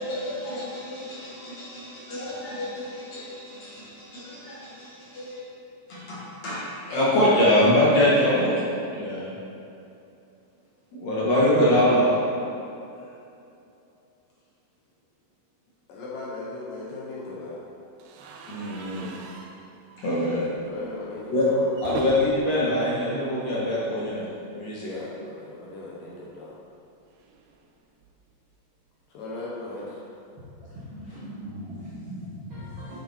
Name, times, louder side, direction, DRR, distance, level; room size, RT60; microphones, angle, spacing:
voice 1, 0.0-5.4 5.9-9.3 10.9-12.4 18.5-19.2 20.0-20.5 21.3-21.5 21.8-24.9, left 1 dB, 50° left, -8 dB, 2.4 m, -24 dB
voice 2, 15.9-17.6 20.6-21.7 24.8-26.6 29.1-30.0, left 2 dB, 70° left, -5 dB, 2.4 m, -37 dB
sound 1, 18.0-24.0 24.3-24.5 24.8-24.9 26.1-28.5, right 4 dB, 80° right, 2.7 m, -42 dB
voice 3, 30.6-33.0, equal, 45° right, -12 dB, 1.7 m, -39 dB
9.9 x 6.7 x 4.4 m, 2.7 s
omnidirectional pair, 4.7 m